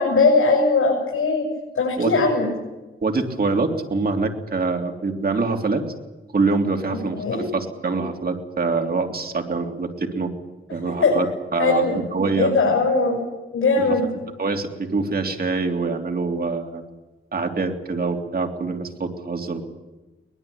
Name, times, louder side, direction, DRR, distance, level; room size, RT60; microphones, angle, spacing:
voice 1, 0.0-1.5 1.8-2.5 7.1-7.4 11.0-11.1 11.6-12.0 12.4-13.2 13.5-14.1, left 3 dB, 75° left, -1 dB, 6.9 m, -19 dB
voice 2, 3.0-5.8 6.3-10.3 10.7-11.3 11.5-11.8 12.1-12.5 13.8-14.0 14.4-16.8 17.3-19.6, right 3 dB, 45° right, 4 dB, 3.2 m, -24 dB
23.0 x 20.5 x 8.7 m, 1.2 s
wide cardioid pair, 120°, 21 cm